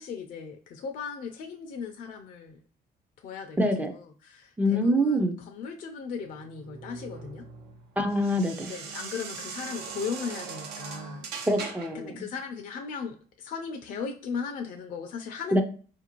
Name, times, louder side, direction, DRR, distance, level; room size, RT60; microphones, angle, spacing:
voice 1, 0.0-2.6 3.2-3.6 3.9-5.2 5.5-7.4 8.7-11.3 11.9-15.6, left 6 dB, 50° left, 4 dB, 0.4 m, -37 dB
voice 2, 3.6-3.9 4.6-5.4 8.0-8.7 11.5-12.3 15.5-15.6, equal, 10° right, 6 dB, 0.4 m, -25 dB
sound 1, 6.2-12.1, right 5 dB, 80° right, 0.6 m, -41 dB
4.4 x 2.5 x 2.9 m, 0.41 s
cardioid pair, 110°, 17 cm